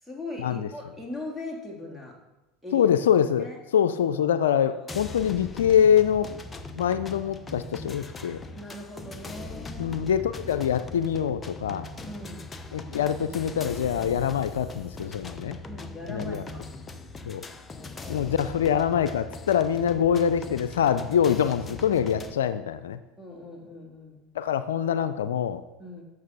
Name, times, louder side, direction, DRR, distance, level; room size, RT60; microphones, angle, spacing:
voice 1, 0.0-2.2 2.6-2.9 3.4-3.6 8.5-10.0 12.0-12.5 15.6-16.6 17.7-18.2 23.2-24.2 25.8-26.0, left 2 dB, 5° right, -2 dB, 3.0 m, -40 dB
voice 2, 2.7-3.5 3.7-6.3 6.8-8.4 9.8-11.9 12.7-15.6 16.1-16.4 17.2-17.4 18.1-23.0 24.4-25.6, left 8 dB, 85° left, 12 dB, 0.4 m, -24 dB
sound 1, 4.9-22.3, left 2 dB, 20° left, 0.8 m, -40 dB
8.6 x 6.5 x 5.4 m, 1.0 s
hypercardioid pair, 90°, 0 cm